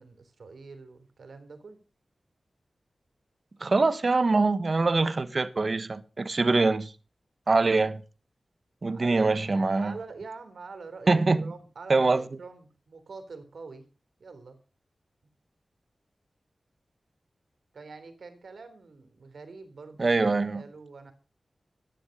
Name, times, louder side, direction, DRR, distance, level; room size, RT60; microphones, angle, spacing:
voice 1, 0.0-1.8 8.9-9.3 9.8-13.8 14.2-14.6 17.7-21.1, right 4 dB, 80° right, 3.3 m, -45 dB
voice 2, 3.6-6.9 7.5-8.0 8.8-9.9 11.1-11.4 11.9-12.2 20.0-20.6, right 3 dB, 45° right, 1.2 m, -24 dB
13.5 x 10.5 x 6.5 m
wide cardioid pair, 105°, 0 cm